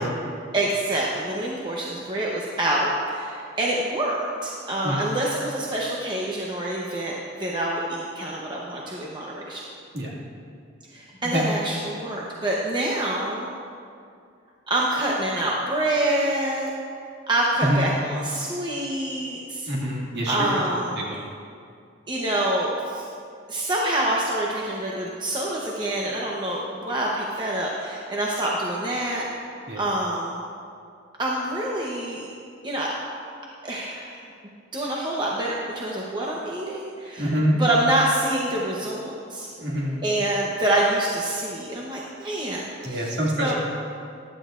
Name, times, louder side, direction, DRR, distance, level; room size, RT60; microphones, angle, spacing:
voice 1, 0.5-7.1 7.4-9.6 10.9-13.5 14.7-16.7 17.3-19.7 20.3-21.0 22.1-23.0 23.5-29.2 29.7-30.4 31.2-32.3 32.6-32.9 33.6-34.2 34.7-37.2 37.6-39.5 40.0-43.5, right 1 dB, 25° right, -4 dB, 0.9 m, -26 dB
voice 2, 19.7-20.6 21.1-21.2 29.7-29.8 37.2-37.6 39.6-40.0 42.8-43.6, equal, 55° right, -3 dB, 2.1 m, -25 dB
14.5 x 11.5 x 2.5 m, 2.4 s
head